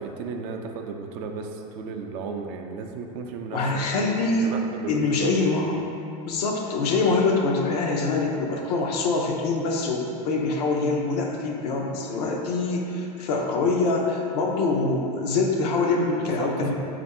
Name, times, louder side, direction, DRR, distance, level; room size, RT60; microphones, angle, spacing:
voice 1, 0.0-5.4 16.2-16.7, right 4 dB, 60° right, 4 dB, 0.4 m, -34 dB
voice 2, 3.5-4.5 4.9-5.9 6.2-16.7, left 3 dB, 80° left, 0 dB, 0.6 m, -24 dB
3.4 x 2.5 x 4.2 m, 2.8 s
supercardioid pair, 110°, 20 cm